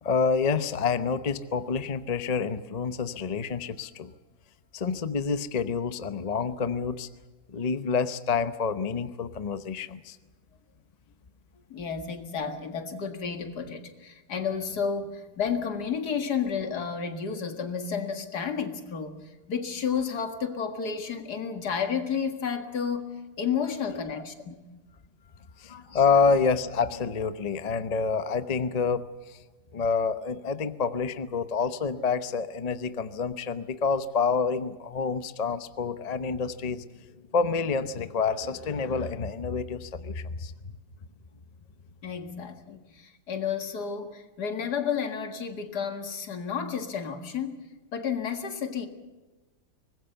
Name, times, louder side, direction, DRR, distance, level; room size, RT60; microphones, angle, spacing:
voice 1, 0.0-4.1 4.7-7.1 7.5-10.2 24.0-24.1 25.6-29.4 29.7-36.9 37.3-40.5, left 5 dB, 35° left, 12 dB, 0.7 m, -28 dB
voice 2, 11.7-23.1 23.4-24.6 25.9-26.0 42.0-48.9, left 6 dB, 70° left, 7 dB, 2.4 m, -31 dB
24.0 x 20.0 x 6.9 m, 1.2 s
omnidirectional pair, 1.8 m